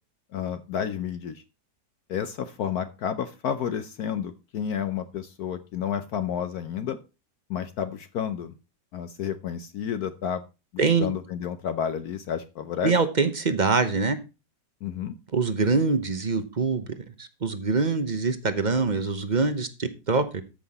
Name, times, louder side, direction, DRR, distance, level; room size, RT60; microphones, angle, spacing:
voice 1, 0.3-1.4 2.1-7.0 7.5-8.5 8.9-10.4 10.7-12.9 14.8-15.1, left 8 dB, 65° left, 1.2 m, -31 dB
voice 2, 10.8-11.1 12.8-14.2 15.3-16.9 17.2-20.4, right 4 dB, 35° right, 0.8 m, -24 dB
13.5 x 5.8 x 4.2 m
omnidirectional pair, 1.9 m